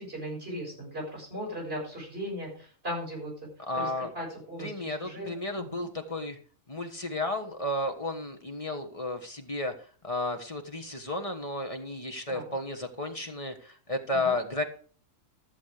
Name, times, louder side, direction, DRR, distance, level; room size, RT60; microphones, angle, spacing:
voice 1, 0.0-3.3 3.7-5.9 14.1-14.3, equal, 40° right, -2 dB, 6.7 m, -38 dB
voice 2, 3.7-4.1 4.6-6.4 6.7-9.7 10.0-14.6, left 2 dB, 25° left, 5 dB, 1.2 m, -33 dB
13.5 x 7.4 x 4.9 m, 0.43 s
omnidirectional pair, 1.5 m